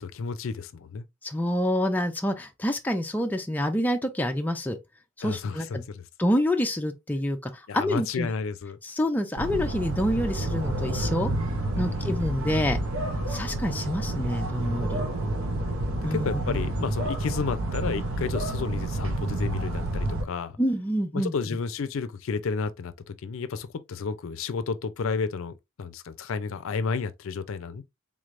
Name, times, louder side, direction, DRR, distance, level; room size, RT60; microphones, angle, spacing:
voice 1, 0.0-1.1 5.2-6.0 7.7-8.8 11.7-12.2 16.1-20.6 21.1-27.8, left 5 dB, 70° left, 0.4 m, -31 dB
voice 2, 1.2-4.8 5.2-5.8 6.2-8.3 8.8-11.3 11.8-12.8 13.3-15.1 16.0-16.6 20.6-21.3, equal, 10° left, 0.4 m, -27 dB
sound 1, 9.4-20.2, right 1 dB, 85° right, 0.7 m, -29 dB
3.6 x 3.2 x 2.5 m
head